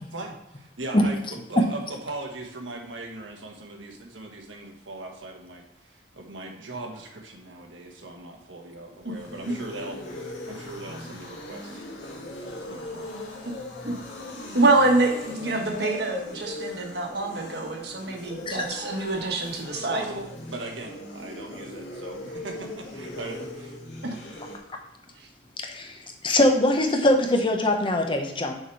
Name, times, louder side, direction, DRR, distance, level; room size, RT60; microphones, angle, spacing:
voice 1, 0.1-13.1 19.8-23.8, right 2 dB, 90° right, 1 dB, 1.4 m, -39 dB
sound 1, 8.9-24.6, left 2 dB, 85° left, 1.9 m, -39 dB
voice 2, 14.5-20.1 24.0-24.2 25.2-25.3, right 2 dB, 60° right, 1 dB, 1.4 m, -25 dB
voice 3, 25.6-26.0 26.2-28.6, left 1 dB, 25° left, 4 dB, 0.8 m, -22 dB
6.5 x 4.8 x 4.6 m, 0.89 s
head